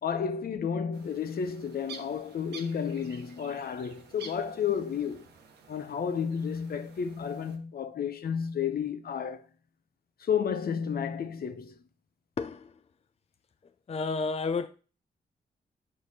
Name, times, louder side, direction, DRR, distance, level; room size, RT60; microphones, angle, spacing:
voice 1, 0.0-5.3 5.7-9.4 10.2-11.8, left 7 dB, 65° left, 0.9 m, -32 dB
sound 1, 0.9-7.6, right 5 dB, 90° right, 1.1 m, -51 dB
voice 2, 12.4-12.7 13.9-14.7, left 4 dB, 40° left, 0.5 m, -31 dB
7.5 x 4.7 x 4.1 m
cardioid pair, 55°, 17 cm